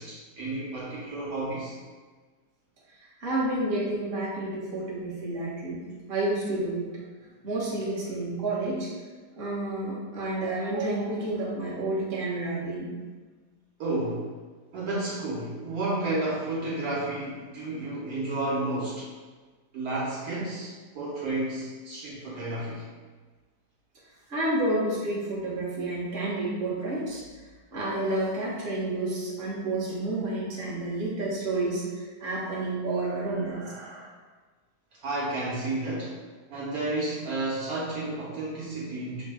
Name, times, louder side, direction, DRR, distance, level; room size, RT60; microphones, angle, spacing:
voice 1, 0.0-1.8 13.8-14.3 14.7-19.1 19.7-22.8 33.5-34.1 34.9-36.2 36.5-39.2, right 2 dB, 70° right, -6 dB, 1.3 m, -31 dB
voice 2, 3.2-5.8 6.1-6.9 7.3-8.9 9.4-12.9 24.3-27.2 27.7-33.6, right 2 dB, 40° right, -6 dB, 1.2 m, -30 dB
6.2 x 2.1 x 3.3 m, 1.4 s
omnidirectional pair, 1.7 m